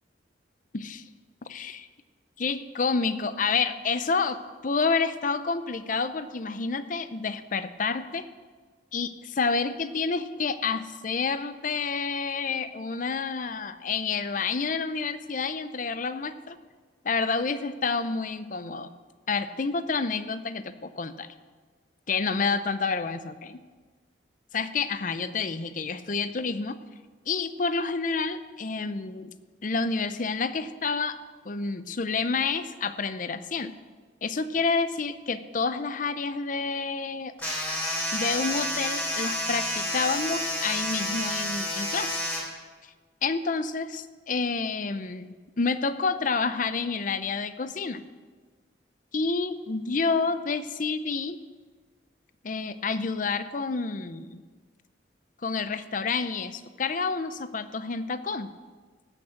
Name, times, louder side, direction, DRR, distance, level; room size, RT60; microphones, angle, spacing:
voice 1, 0.7-1.0 1.5-1.9 2.4-8.3 8.9-16.6 17.1-18.9 19.3-21.3 22.1-23.6 24.5-26.8 27.3-29.3 29.6-31.2 31.4-33.7 34.2-37.3 38.1-42.2 43.2-48.0 49.1-51.4 52.4-54.4 55.4-58.5, left 4 dB, 45° left, 12 dB, 0.6 m, -29 dB
sound 1, 37.4-42.4, left 1 dB, 10° left, 2.9 m, -30 dB
18.0 x 6.3 x 7.6 m, 1.5 s
head